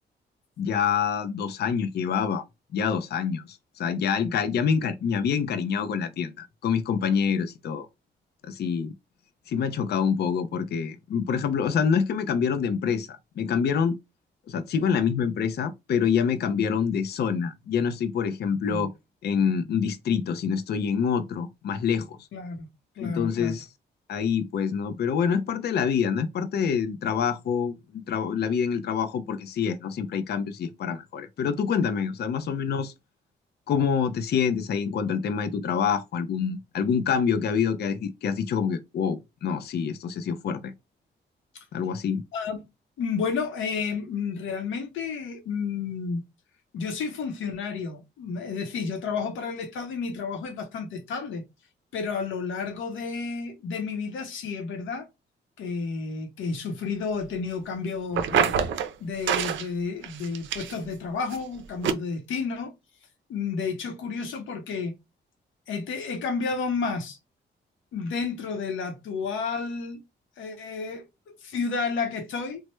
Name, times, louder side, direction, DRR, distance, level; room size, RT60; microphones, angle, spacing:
voice 1, 0.6-2.4 2.7-7.9 8.4-8.9 9.5-14.0 14.5-18.9 19.2-22.2 23.0-23.7 24.1-32.9 33.7-40.7 41.7-42.2, left 7 dB, 55° left, 0.4 m, -26 dB
voice 2, 22.3-22.7 23.0-23.5 41.5-41.6 42.3-42.6 43.0-46.2 46.7-51.4 51.9-55.1 55.6-58.5 59.0-62.7 63.3-64.9 65.7-67.2 67.9-70.0 70.4-72.6, left 5 dB, 90° left, 0.7 m, -31 dB
sound 1, 58.1-58.9 59.3-59.7 60.0-60.9 61.3-61.4 61.8-61.9, right 8 dB, 80° right, 0.4 m, -25 dB
3.2 x 2.0 x 3.0 m
cardioid pair, 85°, 20 cm